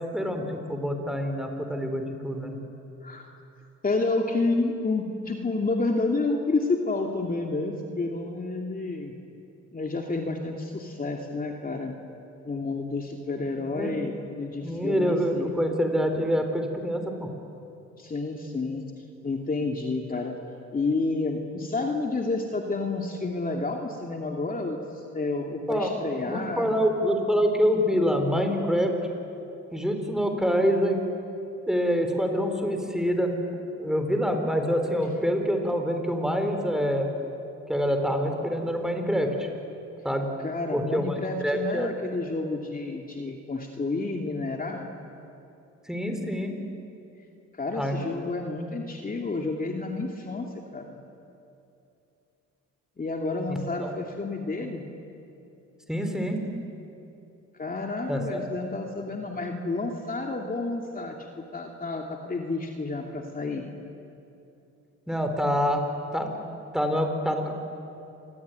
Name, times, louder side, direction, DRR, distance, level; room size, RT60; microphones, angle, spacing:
voice 1, 0.0-2.6 13.6-13.9 14.6-17.3 25.7-25.9 26.3-28.9 29.7-31.0 31.7-33.4 33.8-37.1 37.7-39.5 40.0-40.3 40.7-41.9 45.9-46.5 47.7-48.0 53.5-53.9 55.9-56.4 58.1-58.4 65.1-65.8 66.1-66.3 66.7-67.5, equal, ahead, 5 dB, 4.6 m, -26 dB
voice 2, 3.8-9.1 9.7-12.0 12.4-15.6 18.0-18.8 19.2-20.4 20.7-26.7 40.4-44.9 47.5-51.0 53.0-54.8 57.5-63.7, left 3 dB, 30° left, 1 dB, 2.7 m, -30 dB
28.0 x 22.0 x 9.6 m, 2.7 s
cardioid pair, 90°, 30 cm